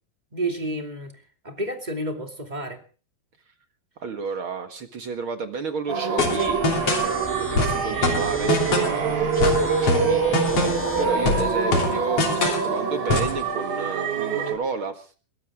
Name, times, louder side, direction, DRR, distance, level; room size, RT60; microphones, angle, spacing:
voice 1, 0.3-1.2 1.4-2.8, right 1 dB, 15° right, 4 dB, 2.1 m, -30 dB
voice 2, 4.0-10.6 11.0-15.1, right 4 dB, 50° right, 6 dB, 1.8 m, -32 dB
sound 1, 5.9-14.5, right 5 dB, 70° right, 4.6 m, -25 dB
sound 2, 6.2-7.1 7.6-9.0 9.4-10.9 11.3-12.7 13.1-13.4, left 3 dB, 40° left, 3.9 m, -24 dB
sound 3, 6.4-11.4, equal, 5° left, 1.2 m, -36 dB
22.0 x 17.5 x 3.7 m, 0.38 s
omnidirectional pair, 4.2 m